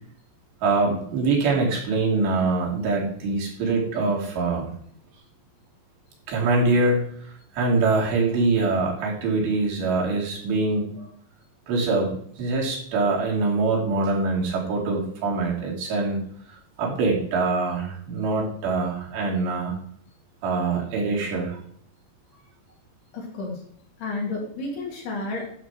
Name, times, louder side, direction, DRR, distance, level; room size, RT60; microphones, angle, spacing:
voice 1, 0.6-4.7 6.3-11.1 11.7-16.2 16.5-19.7 20.4-21.6, right 3 dB, 85° right, -2 dB, 5.0 m, -24 dB
voice 2, 23.1-23.6 24.0-25.6, left 3 dB, 70° left, -1 dB, 5.0 m, -31 dB
11.5 x 7.3 x 4.7 m, 0.63 s
omnidirectional pair, 4.8 m